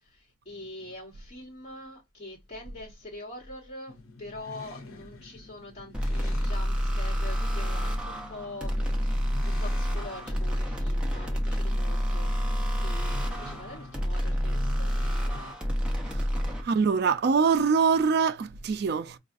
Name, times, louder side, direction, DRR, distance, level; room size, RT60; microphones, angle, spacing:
voice 1, 0.0-14.9, left 1 dB, 30° left, 1.3 m, -44 dB
sound 1, 3.9-15.5, left 3 dB, 80° left, 0.7 m, -47 dB
sound 2, 5.9-16.6, equal, 5° right, 0.6 m, -28 dB
voice 2, 16.6-19.2, right 5 dB, 50° right, 0.3 m, -24 dB
4.9 x 2.3 x 2.4 m
head